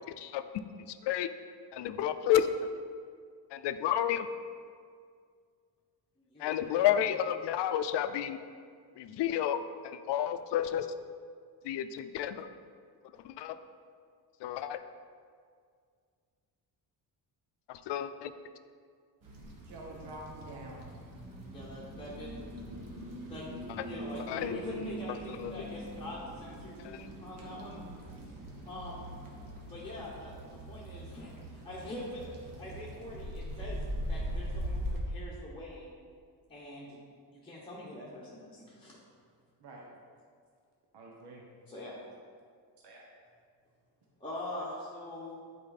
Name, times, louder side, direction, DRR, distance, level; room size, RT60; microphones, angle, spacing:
voice 1, 0.2-1.3 1.7-2.5 3.5-4.3 6.4-8.4 9.0-9.6 9.8-10.9 11.6-12.5 13.2-13.6 14.4-14.8 17.7-18.3 23.8-23.9 24.3-24.6 25.3-25.5 26.8-27.1, left 10 dB, 80° left, 10 dB, 0.5 m, -31 dB
voice 2, 6.3-6.9 21.5-22.4 23.3-27.8 28.6-29.0 29.7-30.3 30.7-33.8 34.1-35.9 36.5-37.0 37.3-38.9 41.7-42.0 44.2-45.4, left 1 dB, 10° left, -8 dB, 1.2 m, -43 dB
sound 1, 19.2-35.0, equal, 55° right, 1.4 m, -41 dB
voice 3, 19.6-20.9 39.6-39.9 40.9-41.5 42.8-43.1, right 1 dB, 75° right, -2 dB, 1.1 m, -47 dB
8.7 x 4.6 x 4.1 m, 2.1 s
cardioid pair, 125°, 41 cm